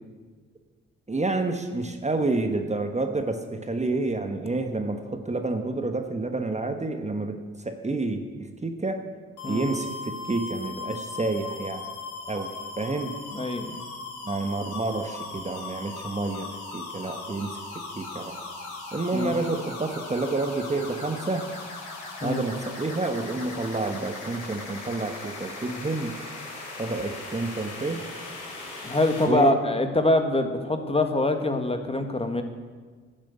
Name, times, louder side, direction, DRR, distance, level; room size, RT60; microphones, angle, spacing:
voice 1, 1.1-9.1 9.5-11.9 12.3-13.2 14.2-16.5 16.7-17.6 17.9-18.4 18.9-21.5 22.2-26.2 26.8-28.0 29.3-29.5, right 2 dB, 25° right, 6 dB, 1.3 m, -29 dB
sound 1, 9.4-29.2, left 3 dB, 85° left, 4.2 m, -38 dB
voice 2, 13.3-13.8 19.1-19.3 22.2-22.4 28.8-32.4, left 2 dB, 20° left, 6 dB, 1.7 m, -24 dB
11.5 x 8.8 x 8.2 m, 1.5 s
supercardioid pair, 55°, 29 cm